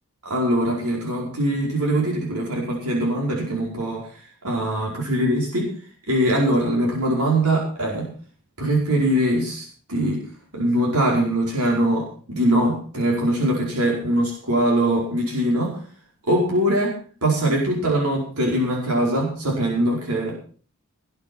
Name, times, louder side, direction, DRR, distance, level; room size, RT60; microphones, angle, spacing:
voice 1, 0.2-5.7 6.1-8.1 8.6-10.2 10.5-15.8 16.2-17.0 17.2-20.3, right 1 dB, 80° right, -2 dB, 5.2 m, -22 dB
19.0 x 8.6 x 6.3 m, 0.42 s
head